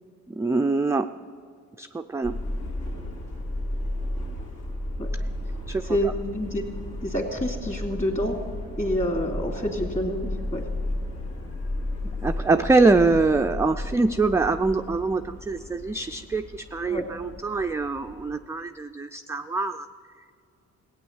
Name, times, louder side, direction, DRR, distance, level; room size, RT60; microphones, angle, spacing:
voice 1, 0.3-1.1 1.8-2.4 5.7-6.0 12.2-19.9, right 3 dB, 10° right, 6 dB, 0.3 m, -24 dB
Subway metro underground, 2.2-18.4, left 1 dB, 75° left, 2.9 m, -34 dB
voice 2, 5.8-6.6 7.0-8.4 8.8-10.7 16.9-17.0, equal, 25° left, 2 dB, 2.6 m, -27 dB
16.5 x 8.6 x 7.2 m, 2.4 s
cardioid pair, 90°, 30 cm